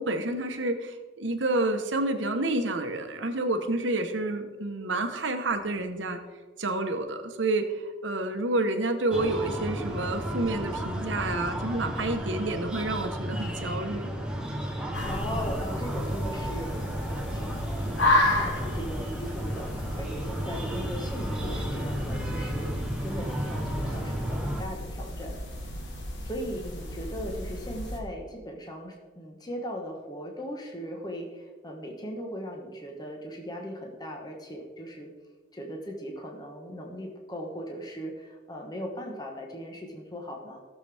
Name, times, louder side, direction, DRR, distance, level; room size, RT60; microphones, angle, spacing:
voice 1, 0.0-6.2 6.6-14.1, right 2 dB, 75° right, 6 dB, 1.1 m, -29 dB
Breathing, 9.1-24.6, equal, 5° right, 0.9 m, -33 dB
sound 1, 14.9-28.0, left 1 dB, 65° left, 1.7 m, -32 dB
voice 2, 15.0-25.4 26.2-35.1 35.5-40.6, equal, 20° left, 1 dB, 1.1 m, -38 dB
16.5 x 6.9 x 3.5 m, 1.5 s
head